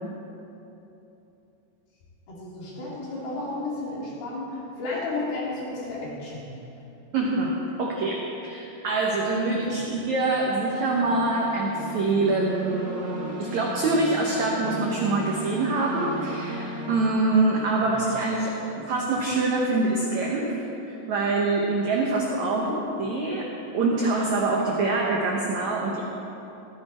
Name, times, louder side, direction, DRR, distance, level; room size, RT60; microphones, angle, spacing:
voice 1, 2.3-6.4 9.8-10.0 17.8-17.9 22.5-22.8, left 2 dB, 60° left, -6 dB, 5.1 m, -33 dB
sound 1, 3.0-3.4 9.3-17.1, equal, 20° right, 1.6 m, -37 dB
voice 2, 7.1-20.5 20.8-22.7 23.0-26.0, right 3 dB, 75° right, -2 dB, 1.7 m, -25 dB
14.5 x 14.5 x 4.3 m, 3.0 s
omnidirectional pair, 4.9 m